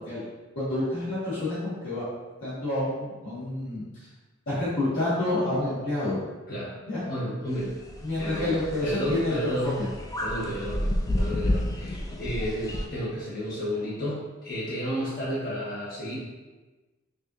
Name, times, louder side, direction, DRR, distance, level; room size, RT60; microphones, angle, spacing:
voice 1, 0.5-2.0 2.4-3.8 4.5-6.2 6.9-7.0 8.0-9.9, left 2 dB, 70° left, -11 dB, 1.4 m, -28 dB
voice 2, 7.0-7.7 8.2-9.8 10.2-16.2, equal, 45° left, -9 dB, 1.4 m, -32 dB
sound 1, 7.5-12.9, left 1 dB, 15° left, 0.3 m, -31 dB
5.3 x 2.4 x 2.8 m, 1.2 s
head